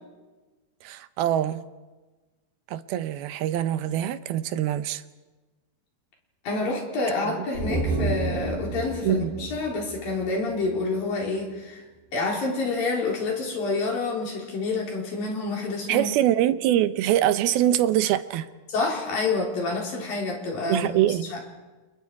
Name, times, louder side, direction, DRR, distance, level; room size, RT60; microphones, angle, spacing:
voice 1, 0.8-1.6 2.7-5.0 7.2-7.5 9.0-9.3 15.9-18.5 20.7-21.3, right 12 dB, 80° right, 12 dB, 2.8 m, -24 dB
voice 2, 6.5-11.8 12.1-16.1 18.7-20.9 21.3-21.4, left 3 dB, 65° left, -1 dB, 5.7 m, -28 dB
sound 1, 7.5-10.9 11.2-11.3, right 2 dB, 55° right, 5.8 m, -31 dB
29.5 x 29.0 x 4.8 m, 1.2 s
omnidirectional pair, 4.3 m